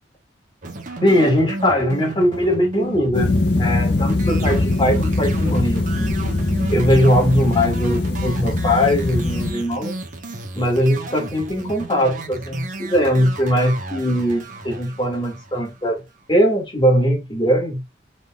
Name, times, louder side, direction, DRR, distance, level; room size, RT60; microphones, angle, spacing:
sound 1, 0.6-16.0, right 2 dB, 50° right, 1.0 m, -33 dB
voice 1, 1.0-6.2 6.7-10.0 10.5-16.0 16.3-17.8, equal, 30° left, 1.9 m, -20 dB
sound 2, 3.1-9.5, left 2 dB, 80° left, 1.2 m, -21 dB
5.2 x 3.4 x 2.4 m
head